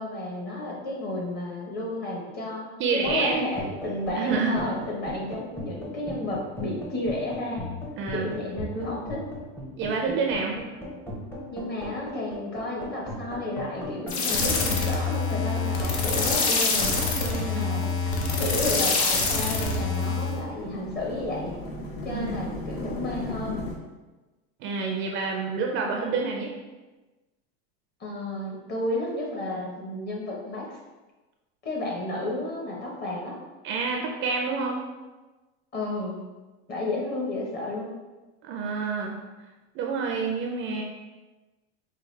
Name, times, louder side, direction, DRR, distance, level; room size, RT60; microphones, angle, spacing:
voice 1, 0.0-7.7 8.1-9.2 11.5-17.8 18.3-21.6 22.0-23.7 28.0-30.8 31.6-33.4 35.7-36.2 36.7-37.9, left 2 dB, 30° left, -2 dB, 1.0 m, -32 dB
voice 2, 2.8-3.5 4.2-4.5 8.0-8.3 9.8-10.6 17.5-17.8 22.1-22.4 24.6-26.5 33.6-34.8 38.4-39.2 39.7-40.8, right 4 dB, 40° right, 1 dB, 0.4 m, -28 dB
sound 1, 3.0-19.8, equal, 5° left, 0.6 m, -38 dB
sound 2, 14.1-20.4, left 4 dB, 80° left, 0.9 m, -25 dB
sound 3, 18.8-23.7, left 1 dB, 60° left, 1.0 m, -38 dB
4.8 x 2.3 x 3.2 m, 1.2 s
supercardioid pair, 140°, 32 cm